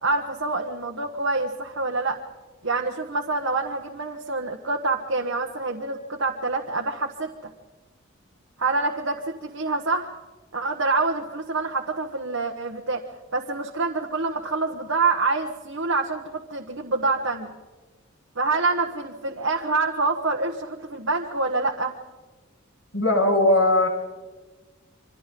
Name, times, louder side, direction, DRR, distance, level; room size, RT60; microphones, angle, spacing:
voice 1, 0.0-2.2 2.6-7.3 8.6-10.1 10.5-13.0 13.3-17.5 18.3-21.9, right 3 dB, 80° right, 1 dB, 1.4 m, -26 dB
voice 2, 22.9-23.9, left 1 dB, 85° left, 0 dB, 5.9 m, -19 dB
27.5 x 24.5 x 3.8 m, 1.3 s
head